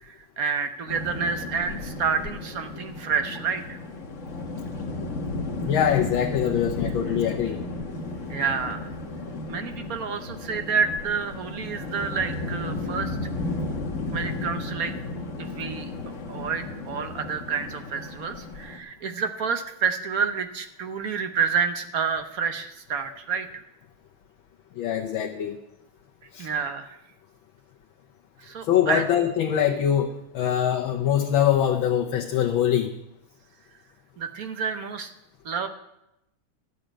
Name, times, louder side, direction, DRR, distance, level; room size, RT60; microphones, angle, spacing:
voice 1, 0.0-3.8 8.3-8.9 9.5-13.2 14.1-14.9 15.4-15.9 16.3-23.6 26.4-27.0 28.4-29.0 34.2-35.1 35.4-35.7, right 6 dB, 55° right, 8 dB, 1.1 m, -29 dB
sound 1, 0.9-18.8, left 2 dB, 45° left, 1.4 m, -33 dB
voice 2, 5.6-7.6 24.8-25.6 26.3-26.5 28.7-32.9, left 10 dB, 90° left, 1 dB, 1.7 m, -23 dB
12.5 x 6.6 x 8.9 m, 0.86 s
omnidirectional pair, 2.1 m